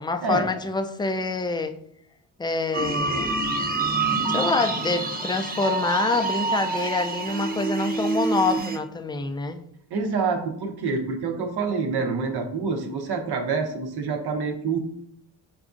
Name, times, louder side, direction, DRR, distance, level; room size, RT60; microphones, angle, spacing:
voice 1, 0.0-1.7 2.4-3.3 4.3-9.6, left 3 dB, 10° left, 7 dB, 0.3 m, -26 dB
sound 1, 2.7-8.8, right 3 dB, 20° right, 0.8 m, -27 dB
voice 2, 9.9-14.8, right 4 dB, 70° right, 3 dB, 0.8 m, -27 dB
5.9 x 2.4 x 2.5 m, 0.72 s
cardioid pair, 60°, 40 cm